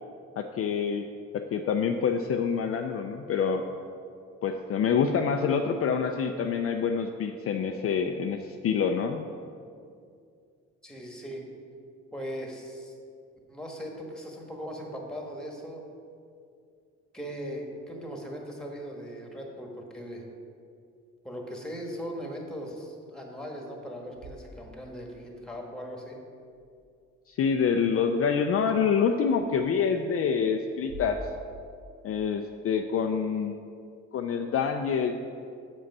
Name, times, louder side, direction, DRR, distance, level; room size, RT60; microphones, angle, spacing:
voice 1, 0.4-1.1 1.3-3.6 4.4-9.3 27.3-31.2 32.0-33.6 34.1-35.1, left 6 dB, 50° left, 5 dB, 0.4 m, -26 dB
voice 2, 10.8-11.4 12.1-13.0 13.5-15.8 17.1-20.2 21.2-26.2, equal, ahead, 1 dB, 1.4 m, -39 dB
sound 1, 23.9-25.3 26.4-27.1 29.3-29.4 30.7-32.7, right 1 dB, 55° right, 0.9 m, -48 dB
7.1 x 5.2 x 5.4 m, 2.4 s
cardioid pair, 90°, 30 cm